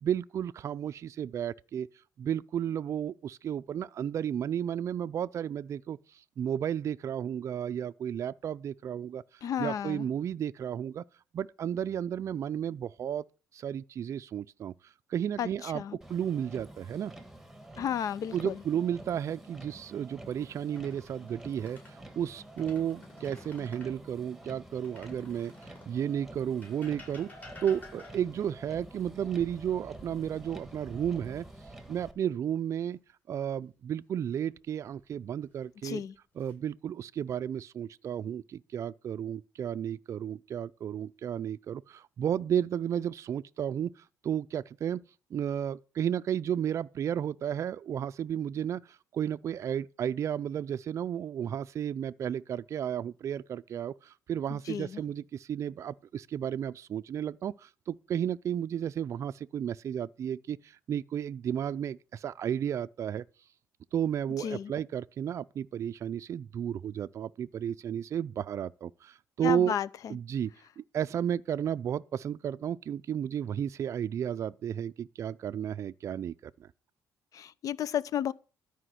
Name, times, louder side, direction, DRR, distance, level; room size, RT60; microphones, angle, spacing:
voice 1, 0.0-1.9 2.2-6.0 6.4-9.2 9.6-11.0 11.3-13.2 13.5-14.7 15.1-15.8 16.1-17.1 18.3-25.5 25.9-27.3 27.6-31.4 31.9-33.0 33.3-36.0 36.4-44.0 44.2-45.0 45.3-48.9 49.1-63.2 63.9-69.8 70.1-70.5 70.8-76.7, right 9 dB, 45° right, 0.4 m, -33 dB
voice 2, 9.4-10.1 15.4-16.0 17.8-18.6 35.8-36.1 54.5-55.0 64.4-64.7 69.4-70.2 77.3-78.3, left 9 dB, 55° left, 0.6 m, -33 dB
Motor vehicle (road), 16.0-32.1, right 1 dB, 5° right, 1.5 m, -49 dB
sound 1, 20.6-22.0 22.4-24.0 24.8-26.0 26.6-28.4 30.3-31.0 31.4-31.6 34.6-35.2 35.9-36.5, left 3 dB, 25° left, 5.2 m, -53 dB
13.0 x 5.0 x 7.7 m
cardioid pair, 125°, 7 cm